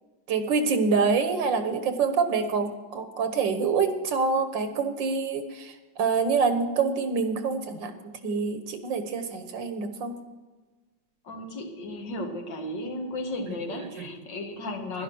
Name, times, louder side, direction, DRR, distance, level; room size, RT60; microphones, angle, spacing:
voice 1, 0.3-10.2 14.0-14.1, right 5 dB, 80° right, 8 dB, 1.9 m, -26 dB
voice 2, 11.2-15.0, left 1 dB, 75° left, 4 dB, 2.3 m, -34 dB
11.5 x 11.0 x 6.2 m, 1.2 s
omnidirectional pair, 2.0 m